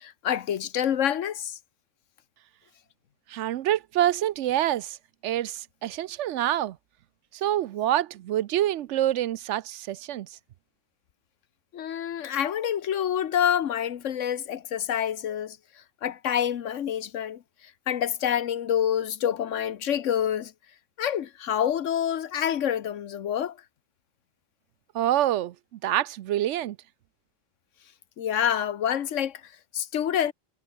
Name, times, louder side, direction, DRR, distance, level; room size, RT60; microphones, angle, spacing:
voice 1, 0.0-1.6 11.7-15.6 16.0-17.4 17.9-20.5 21.0-23.6 28.2-29.4 29.7-30.3, left 9 dB, 75° left, 1.2 m, -27 dB
voice 2, 3.3-5.0 5.2-6.8 7.3-10.4 24.9-26.8, right 12 dB, 75° right, 0.9 m, -26 dB
omnidirectional pair, 1.3 m